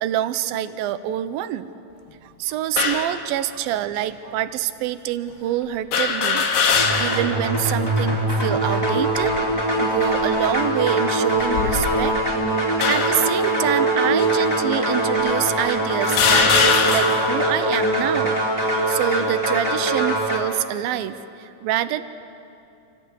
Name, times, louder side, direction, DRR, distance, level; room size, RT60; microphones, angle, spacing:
voice 1, 0.0-1.7 2.2-6.5 7.0-9.4 9.8-12.2 12.9-22.0, right 12 dB, 85° right, 12 dB, 2.6 m, -26 dB
sound 1, 2.8-3.1 4.0-4.1 5.9-7.4 7.8-7.9 9.0-9.5 10.2-10.4 11.4-12.2 12.8-13.3 14.2-14.3 15.2-15.3 16.0-17.4, left 5 dB, 90° left, 3.4 m, -21 dB
sound 2, 6.7-20.4, right 1 dB, 5° left, 2.5 m, -22 dB
27.0 x 15.0 x 8.2 m, 2.7 s
omnidirectional pair, 4.1 m